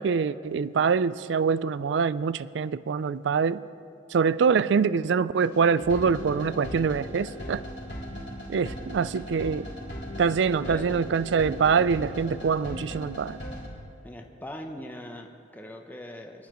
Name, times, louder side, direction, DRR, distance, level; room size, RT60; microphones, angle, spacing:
voice 1, 0.0-3.6 4.1-7.6 8.5-9.7 10.2-13.4, right 6 dB, 75° right, 17 dB, 0.4 m, -24 dB
sound 1, 5.4-13.7, equal, 70° left, 3.8 m, -38 dB
voice 2, 10.5-10.9 14.0-16.5, left 1 dB, 10° left, 3 dB, 0.7 m, -41 dB
23.5 x 11.5 x 3.0 m, 2.4 s
head